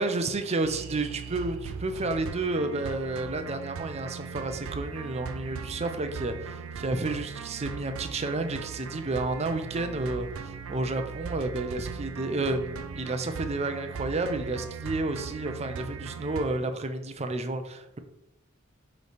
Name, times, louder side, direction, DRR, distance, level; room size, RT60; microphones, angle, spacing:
voice 1, 0.0-18.0, right 2 dB, 30° right, 8 dB, 0.5 m, -31 dB
sound 1, 0.6-16.6, right 5 dB, 80° right, 0.4 m, -39 dB
6.6 x 3.2 x 5.0 m, 0.85 s
head